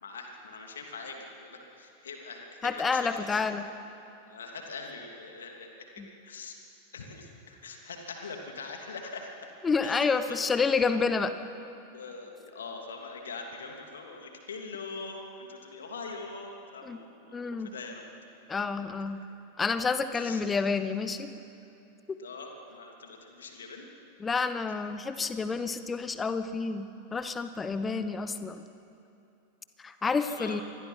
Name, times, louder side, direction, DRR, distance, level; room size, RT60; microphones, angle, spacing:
voice 1, 0.0-3.5 4.3-5.9 6.2-6.5 6.9-9.5 9.8-10.7 11.9-18.1 18.5-18.7 20.1-20.4 22.2-23.9 30.1-30.6, left 4 dB, 65° left, 2 dB, 2.9 m, -43 dB
voice 2, 2.6-3.7 6.0-6.1 9.6-11.3 16.8-17.0 17.3-17.7 18.5-19.2 19.6-21.3 22.1-22.2 24.2-28.6 29.8-30.6, left 4 dB, 15° left, 10 dB, 1.2 m, -29 dB
27.0 x 21.0 x 5.9 m, 2.8 s
figure-of-eight pair, 90°, 0 cm